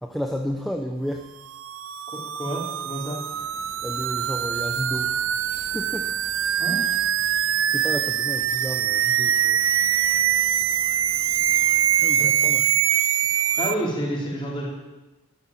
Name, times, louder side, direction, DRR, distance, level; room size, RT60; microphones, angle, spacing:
voice 1, 0.0-1.3 3.8-5.2 5.5-6.2 7.7-9.6 12.0-12.7, equal, ahead, 2 dB, 0.8 m, -32 dB
sound 1, 1.5-13.7, right 10 dB, 70° right, 0.6 m, -23 dB
voice 2, 2.4-3.2 6.6-6.8 12.2-12.5 13.6-14.7, equal, 25° left, -3 dB, 4.3 m, -29 dB
sound 2, 3.3-12.0, right 2 dB, 85° right, 1.5 m, -48 dB
12.5 x 12.0 x 9.0 m, 1.1 s
head